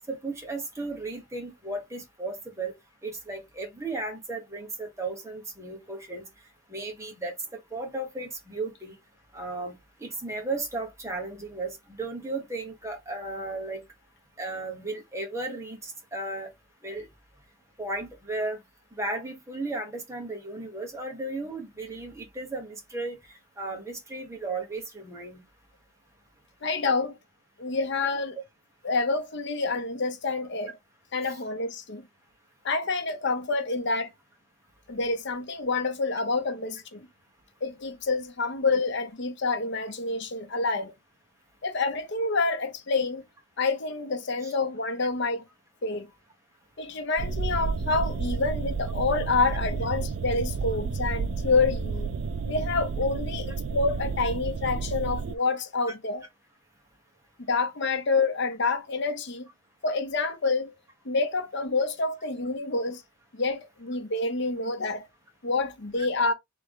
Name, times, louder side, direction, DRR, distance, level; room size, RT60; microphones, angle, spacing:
voice 1, 0.1-2.7 3.0-6.3 6.7-7.3 7.7-8.9 9.3-9.7 10.0-13.8 14.4-16.5 16.8-17.1 17.8-18.6 18.9-23.2 23.6-25.4 44.4-44.5, right 2 dB, 15° right, 1.2 m, -35 dB
voice 2, 26.6-27.2 27.6-28.4 28.8-30.7 31.1-32.0 32.6-34.1 34.9-37.1 37.6-40.9 41.6-43.2 43.6-45.4 45.8-46.1 46.8-52.1 52.5-56.2 57.5-59.4 59.8-60.7 61.0-63.0 63.3-65.1 65.4-66.3, left 3 dB, 55° left, 0.7 m, -28 dB
sound 1, 47.2-55.3, right 4 dB, 65° right, 0.4 m, -31 dB
3.8 x 3.4 x 3.6 m
head